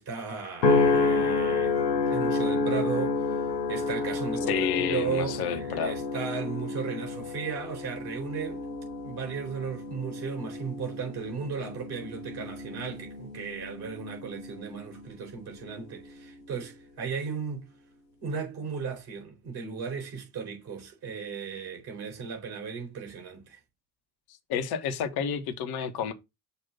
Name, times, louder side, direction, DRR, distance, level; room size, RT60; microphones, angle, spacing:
voice 1, 0.0-1.8 2.1-3.4 3.7-8.6 9.0-17.7 18.2-23.6, right 6 dB, 50° right, 4.2 m, -35 dB
sound 1, 0.6-15.1 15.6-16.1, left 3 dB, 85° left, 0.9 m, -30 dB
voice 2, 4.5-6.0 24.5-26.1, left 8 dB, 50° left, 1.1 m, -30 dB
6.8 x 2.7 x 5.6 m
figure-of-eight pair, 60°, 49 cm